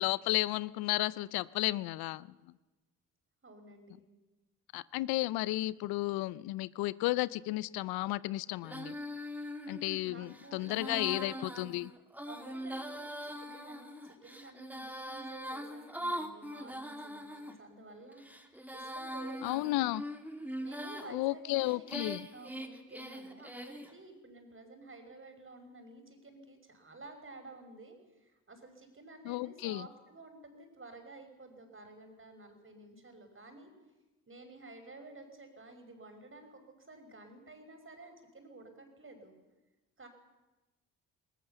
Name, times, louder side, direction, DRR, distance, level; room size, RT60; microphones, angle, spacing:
voice 1, 0.0-2.3 4.7-8.9 9.7-11.9 19.4-20.0 21.1-22.2 29.2-29.9, left 18 dB, 70° left, 20 dB, 0.6 m, -33 dB
voice 2, 3.4-4.0 10.0-11.7 12.3-19.8 20.6-33.7 34.3-39.3 40.0-40.1, right 2 dB, 35° right, 6 dB, 5.6 m, -52 dB
Female singing, 8.6-17.5 18.1-21.1 21.6-23.9, equal, 5° right, 3.1 m, -42 dB
21.0 x 19.5 x 7.0 m, 1.1 s
hypercardioid pair, 45°, 38 cm